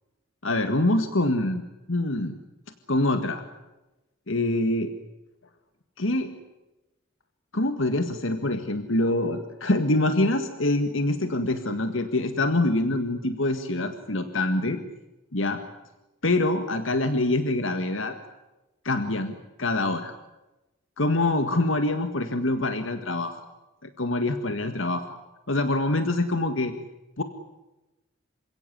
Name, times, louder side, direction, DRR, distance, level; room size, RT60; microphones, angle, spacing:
voice 1, 0.4-1.6 1.9-2.4 2.9-3.4 4.3-4.9 6.0-6.3 7.5-14.8 15.3-15.6 16.2-18.2 18.9-19.3 19.6-20.1 21.0-23.4 23.8-25.1 25.5-26.7 27.2-27.3, left 2 dB, 75° left, 8 dB, 1.8 m, -25 dB
28.0 x 17.0 x 10.0 m, 1.0 s
head